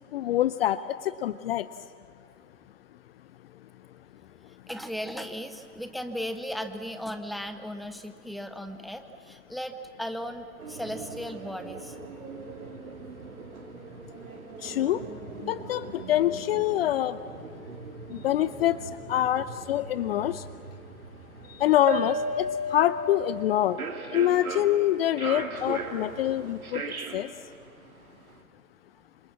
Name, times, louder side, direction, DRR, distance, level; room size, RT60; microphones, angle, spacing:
voice 1, 0.1-1.7 14.6-15.0 15.4-17.2 18.1-20.5 21.5-23.8 24.1-27.3, left 12 dB, 40° left, 15 dB, 0.7 m, -26 dB
voice 2, 4.7-11.9, equal, ahead, 9 dB, 1.2 m, -36 dB
sound 1, 10.6-28.4, right 2 dB, 70° right, 3.3 m, -38 dB
27.5 x 27.0 x 7.4 m, 2.3 s
figure-of-eight pair, 110°, 44 cm